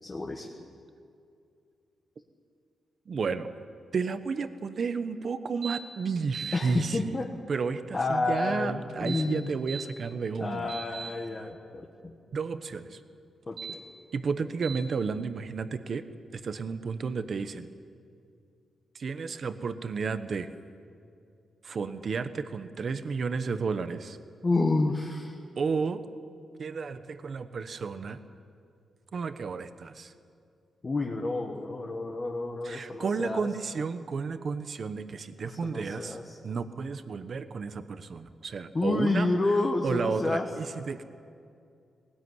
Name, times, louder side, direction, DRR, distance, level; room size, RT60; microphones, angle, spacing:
voice 1, 0.0-0.5 6.5-7.3 7.9-9.5 10.4-12.1 13.5-13.8 24.4-25.4 30.8-33.5 35.4-36.4 38.7-40.5, left 2 dB, 25° left, 1 dB, 1.4 m, -29 dB
voice 2, 3.1-3.5 3.9-7.2 7.5-10.7 12.3-13.0 14.1-16.0 16.3-17.7 18.9-20.5 21.6-24.2 25.6-26.0 26.6-28.2 29.1-30.1 32.6-36.2 36.4-39.3 39.8-41.0, right 5 dB, 40° right, 10 dB, 1.0 m, -32 dB
sound 1, 5.6-5.8 6.2-6.6 8.9-9.9 10.3-11.1 13.4-13.8 14.6-14.8, right 6 dB, 65° right, 2.3 m, -38 dB
20.0 x 19.0 x 9.6 m, 2.4 s
wide cardioid pair, 165°, 0 cm